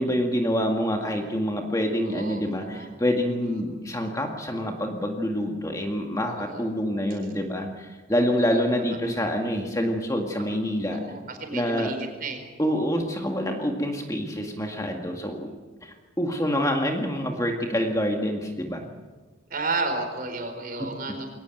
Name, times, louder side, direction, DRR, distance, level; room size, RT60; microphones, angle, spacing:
voice 1, 0.0-11.0 11.5-11.9 12.6-15.5 15.8-18.9 20.8-20.9, equal, 15° left, 2 dB, 2.0 m, -26 dB
voice 2, 2.0-2.9 6.2-6.7 8.4-8.6 10.4-10.5 10.9-12.4 19.5-21.3, right 3 dB, 45° right, 5 dB, 4.5 m, -32 dB
22.5 x 18.5 x 9.2 m, 1.3 s
head